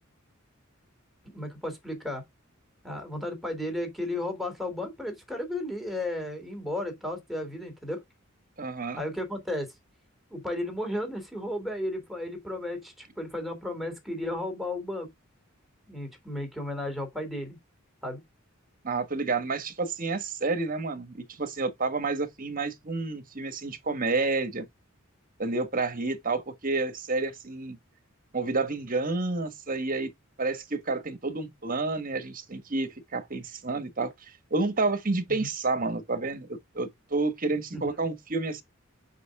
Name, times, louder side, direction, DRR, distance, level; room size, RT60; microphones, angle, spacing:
voice 1, 1.2-2.2 2.8-8.0 9.0-9.7 10.3-15.1 15.9-17.6 18.0-18.2 35.3-35.5 37.7-38.1, left 1 dB, ahead, 3.1 m, -34 dB
voice 2, 8.6-9.0 18.8-24.7 25.4-27.8 28.3-30.1 30.4-38.6, right 3 dB, 40° right, 1.5 m, -30 dB
8.2 x 5.5 x 3.7 m
head